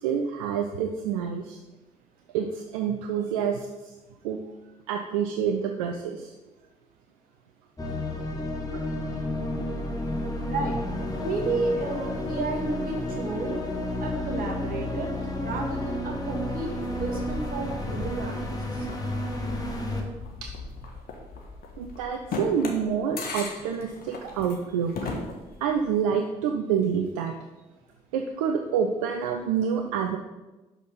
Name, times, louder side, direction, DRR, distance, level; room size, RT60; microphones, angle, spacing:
voice 1, 0.0-1.6 2.3-3.7 4.2-4.4 4.9-6.3 8.7-8.9 20.4-20.5 21.8-24.9 25.6-27.3 28.1-30.2, right 7 dB, 80° right, 4 dB, 0.5 m, -27 dB
sound 1, 7.8-20.0, left 1 dB, 20° left, 1.8 m, -31 dB
voice 2, 10.4-10.8 11.2-13.6 14.0-15.1 15.4-16.7 17.0-18.9, right 3 dB, 55° right, 1 dB, 1.9 m, -32 dB
sound 2, 16.8-26.0, left 3 dB, 60° left, 1.4 m, -38 dB
6.2 x 5.7 x 5.5 m, 1.1 s
hypercardioid pair, 45°, 17 cm